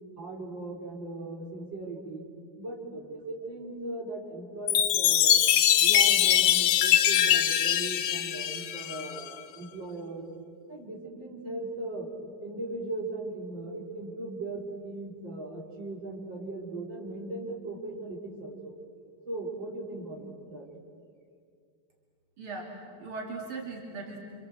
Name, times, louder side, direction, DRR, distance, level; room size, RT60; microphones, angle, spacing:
voice 1, 0.2-2.2 2.6-5.3 5.8-10.3 10.7-12.1 12.4-18.7 19.3-20.7, right 2 dB, 65° right, -1 dB, 4.2 m, -38 dB
Chime, 4.7-9.3, left 11 dB, 90° left, 1.7 m, -23 dB
voice 2, 22.4-24.2, right 3 dB, 85° right, -1 dB, 3.5 m, -39 dB
27.0 x 27.0 x 7.8 m, 2.2 s
omnidirectional pair, 2.2 m